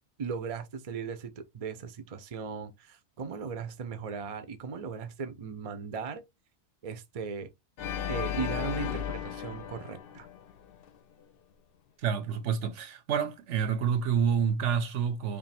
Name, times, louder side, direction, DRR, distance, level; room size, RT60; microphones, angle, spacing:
voice 1, 0.2-6.2 6.8-7.5 8.1-10.3, right 5 dB, 40° right, 0.6 m, -37 dB
Organ, 7.8-10.9, left 9 dB, 60° left, 0.7 m, -35 dB
voice 2, 12.0-15.4, right 7 dB, 85° right, 1.1 m, -28 dB
3.5 x 2.6 x 4.1 m
omnidirectional pair, 1.2 m